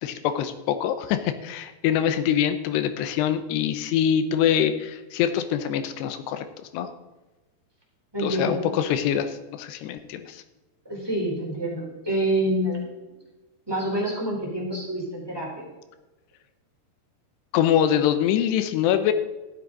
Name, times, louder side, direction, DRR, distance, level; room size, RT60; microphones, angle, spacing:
voice 1, 0.0-6.9 8.2-10.4 17.5-19.1, left 9 dB, 80° left, 10 dB, 2.9 m, -24 dB
voice 2, 8.1-8.7 10.8-12.8 13.7-15.7, right 1 dB, 5° right, -4 dB, 3.0 m, -27 dB
15.0 x 8.4 x 3.9 m, 1.1 s
omnidirectional pair, 5.0 m